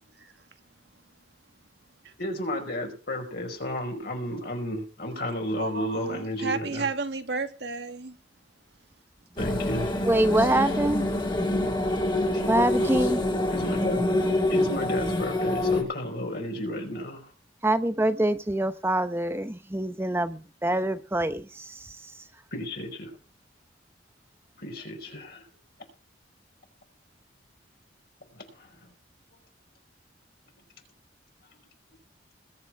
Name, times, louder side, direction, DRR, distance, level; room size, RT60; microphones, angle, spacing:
voice 1, 2.2-6.9 9.3-9.9 13.5-14.0 14.5-17.3 22.5-23.1 24.6-25.4 28.3-28.7, left 1 dB, 55° left, 5.1 m, -33 dB
voice 2, 5.6-8.2 11.6-12.0, right 4 dB, 60° right, 1.9 m, -33 dB
sound 1, 9.4-15.8, left 1 dB, 25° left, 3.1 m, -26 dB
voice 3, 10.0-11.0 12.5-13.3 17.6-22.2, right 1 dB, 15° right, 0.9 m, -25 dB
21.5 x 7.1 x 4.7 m
head